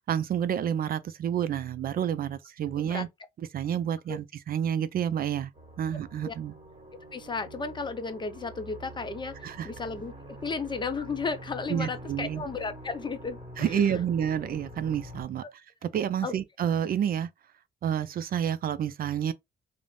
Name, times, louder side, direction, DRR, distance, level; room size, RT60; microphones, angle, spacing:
voice 1, 0.1-3.1 3.5-5.5 5.8-6.5 9.4-9.7 11.7-12.4 13.6-15.4 15.8-17.3 17.8-19.3, right 9 dB, 50° right, 0.4 m, -29 dB
sound 1, 5.5-15.2, right 1 dB, 30° right, 1.4 m, -46 dB
voice 2, 7.1-14.0 15.4-15.5 16.2-16.4, left 4 dB, 25° left, 0.5 m, -34 dB
2.4 x 2.1 x 3.1 m
cardioid pair, 90°, 20 cm